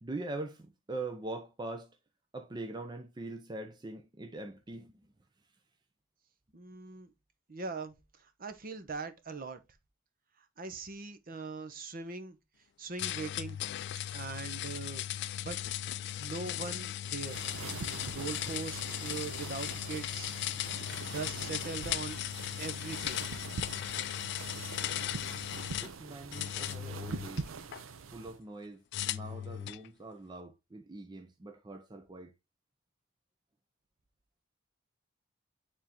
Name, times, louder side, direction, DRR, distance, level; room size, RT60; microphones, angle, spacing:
voice 1, 0.0-1.9 2.3-5.0 25.8-27.5 28.1-32.3, right 2 dB, 20° right, 0.5 m, -42 dB
voice 2, 6.5-7.1 7.5-9.6 10.6-12.4 12.8-13.6 14.1-15.0 15.4-15.7 16.2-17.4 18.1-20.3 21.1-22.2 22.6-23.2, right 4 dB, 45° right, 0.8 m, -41 dB
sound 1, 13.0-25.9 26.3-27.8 28.9-29.9, left 12 dB, 60° left, 0.3 m, -37 dB
sound 2, 17.2-28.4, right 5 dB, 90° right, 0.6 m, -44 dB
9.1 x 3.7 x 2.9 m
head